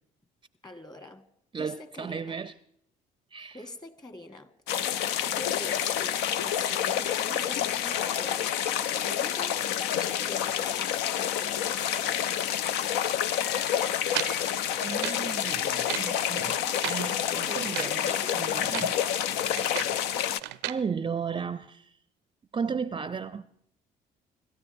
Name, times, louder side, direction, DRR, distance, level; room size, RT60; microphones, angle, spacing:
voice 1, 0.6-1.3 1.6-2.4 3.5-4.5 5.2-9.6 10.0-12.3 17.4-18.9, left 1 dB, 25° left, 1.6 m, -45 dB
voice 2, 1.5-2.5 3.3-3.6 14.5-19.0 20.7-21.9 22.5-23.5, right 6 dB, 30° right, 0.5 m, -35 dB
sound 1, 4.7-20.4, left 10 dB, 85° left, 0.5 m, -28 dB
sound 2, 9.9-10.1 12.3-12.4 13.3-14.4 14.8-15.1 15.7-16.8, left 4 dB, 55° left, 2.6 m, -45 dB
sound 3, 14.1-15.3 15.7-16.1 16.6-17.1 17.6-18.0 18.5-19.0 19.3-20.0 20.4-20.8, right 17 dB, 85° right, 0.5 m, -36 dB
26.0 x 13.0 x 3.5 m
supercardioid pair, 65°, 17 cm